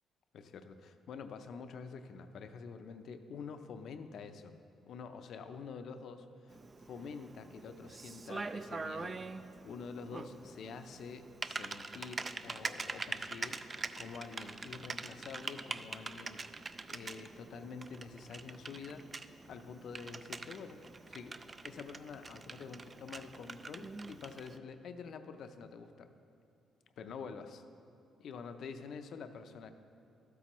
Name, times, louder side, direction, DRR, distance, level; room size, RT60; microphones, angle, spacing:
voice 1, 0.3-4.5 4.9-6.6 6.8-9.2 9.6-19.1 19.5-21.4 21.6-26.1 27.0-27.6 28.2-29.7, left 5 dB, 70° left, 9 dB, 0.5 m, -47 dB
Typing, 6.5-24.6, right 3 dB, 30° right, 0.3 m, -44 dB
12.5 x 8.3 x 3.0 m, 2.5 s
cardioid pair, 90°, 0 cm